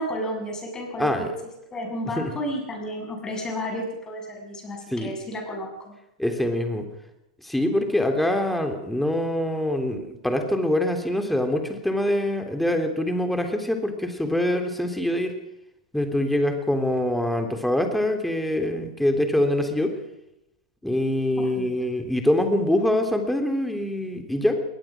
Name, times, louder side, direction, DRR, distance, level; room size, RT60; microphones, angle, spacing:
voice 1, 0.0-1.3 1.7-5.9 21.4-21.7, equal, 20° left, 2 dB, 7.1 m, -32 dB
voice 2, 1.0-1.3 2.2-2.3 4.9-5.1 6.2-6.9 7.4-15.3 15.9-19.9 20.8-24.6, left 1 dB, 5° left, 5 dB, 3.4 m, -24 dB
21.5 x 19.5 x 6.2 m, 0.88 s
hypercardioid pair, 115°, 3 cm